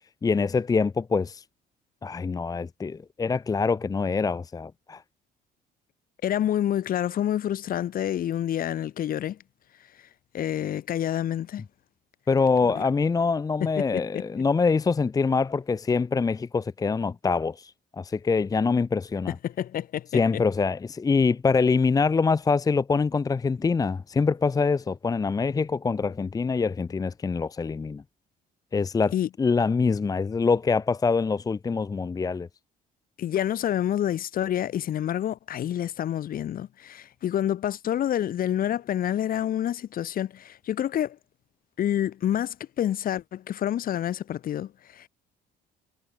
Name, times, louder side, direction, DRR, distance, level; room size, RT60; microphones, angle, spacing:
voice 1, 0.2-1.4 2.0-5.0 12.3-19.4 20.1-28.0 28.7-29.1 29.4-32.5, left 4 dB, 20° left, 0.7 m, -24 dB
voice 2, 6.2-9.4 10.3-11.6 13.6-14.2 19.3-20.2 29.1-29.3 33.2-41.2 41.8-45.1, left 11 dB, 60° left, 4.3 m, -28 dB
cardioid pair, 110°, 17 cm